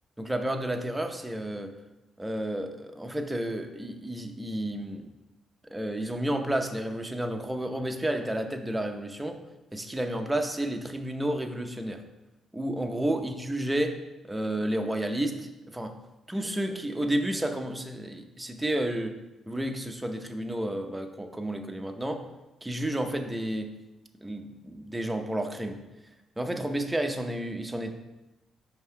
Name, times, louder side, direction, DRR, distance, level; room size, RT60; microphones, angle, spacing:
voice 1, 0.2-1.7 2.2-5.1 5.7-9.4 9.7-12.0 12.5-14.0 14.2-15.9 16.3-19.1 19.5-22.2 22.6-23.7 24.2-25.8 26.4-27.9, right 1 dB, 10° right, 5 dB, 0.7 m, -31 dB
5.4 x 3.5 x 5.7 m, 1.0 s
cardioid pair, 90°, 0 cm